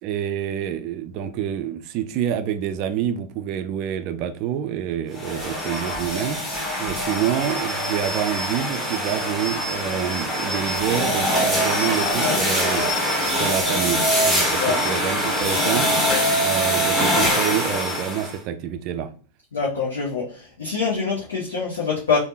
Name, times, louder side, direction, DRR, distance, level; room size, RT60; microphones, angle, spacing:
voice 1, 0.0-6.4 6.8-12.9 13.3-15.9 16.3-19.1, right 10 dB, 40° right, 0.3 m, -27 dB
sound 1, 5.1-18.4, equal, 10° left, 0.9 m, -23 dB
voice 2, 19.5-22.2, left 5 dB, 65° left, 0.8 m, -25 dB
3.4 x 2.1 x 2.6 m
figure-of-eight pair, 90°, 0 cm